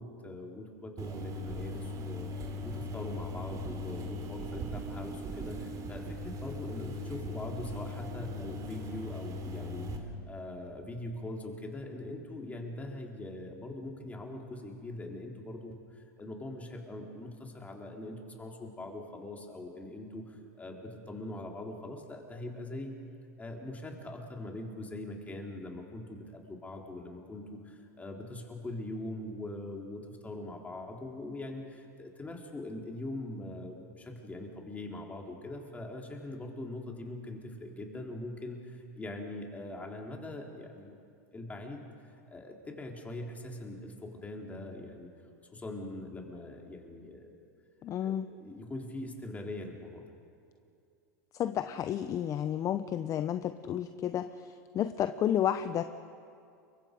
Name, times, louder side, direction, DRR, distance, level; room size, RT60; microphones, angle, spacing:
voice 1, 0.0-2.3 2.6-22.9 23.4-41.0 41.3-41.8 42.3-45.1 45.5-47.5 48.0-50.0, left 1 dB, 15° left, 1 dB, 3.7 m, -42 dB
sound 1, 1.0-10.0, left 1 dB, 35° right, 3.4 m, -39 dB
voice 2, 47.8-48.3 51.4-55.8, left 10 dB, 35° left, 11 dB, 0.7 m, -31 dB
29.0 x 23.5 x 5.2 m, 2.4 s
hypercardioid pair, 110°, 10 cm